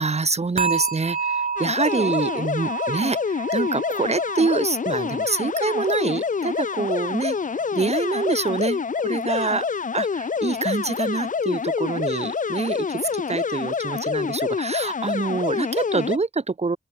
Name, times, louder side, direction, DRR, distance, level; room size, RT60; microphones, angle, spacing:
voice 1, 0.0-7.4 7.7-9.7 9.9-16.8, right 4 dB, 45° right, 5.5 m, -26 dB
sound 1, 0.6-7.6 7.9-8.3 8.8-8.9, right 5 dB, 65° right, 2.0 m, -31 dB
sound 2, 1.6-16.2, left 5 dB, 55° left, 1.4 m, -27 dB
open air
wide cardioid pair, 100°, 16 cm